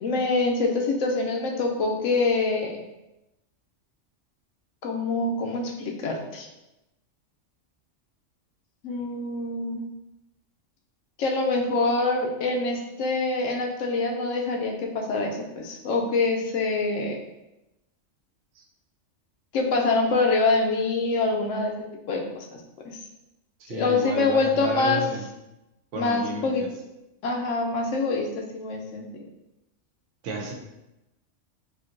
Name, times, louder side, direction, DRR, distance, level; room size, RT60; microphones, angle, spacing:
voice 1, 0.0-2.8 4.8-6.5 8.8-9.9 11.2-17.2 19.5-23.0 23.7-25.0 26.0-26.6 27.2-29.1, left 3 dB, 90° left, 1 dB, 1.0 m, -25 dB
voice 2, 23.6-25.2 25.9-26.7 30.2-30.5, right 2 dB, 80° right, 0 dB, 0.9 m, -32 dB
3.6 x 2.7 x 2.5 m, 0.94 s
omnidirectional pair, 1.3 m